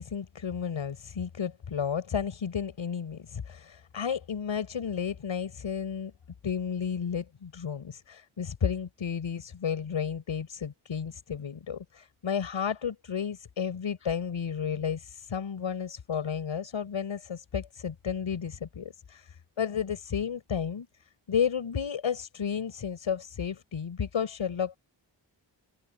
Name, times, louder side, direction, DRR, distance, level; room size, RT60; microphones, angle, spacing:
voice 1, 0.0-6.1 6.4-20.9 21.3-24.8, left 7 dB, 90° left, 5.7 m, -32 dB
cardioid pair, 60°, 46 cm